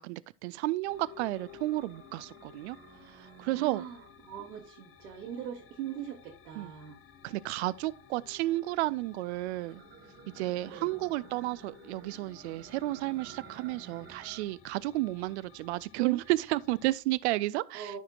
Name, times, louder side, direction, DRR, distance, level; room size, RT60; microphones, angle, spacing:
voice 1, 0.0-2.8 3.1-3.8 6.6-6.7 7.2-9.8 10.4-18.0, right 18 dB, 50° right, 0.4 m, -32 dB
sound 1, 0.8-16.9, left 8 dB, 30° left, 0.9 m, -55 dB
sound 2, 0.9-4.5 5.0-7.2 7.8-14.7 15.0-15.8 16.1-17.2, right 6 dB, 25° right, 1.4 m, -55 dB
voice 2, 3.5-7.0 10.7-10.9 17.7-18.0, right 9 dB, 65° right, 1.7 m, -41 dB
13.5 x 5.7 x 2.4 m
figure-of-eight pair, 75°, 47 cm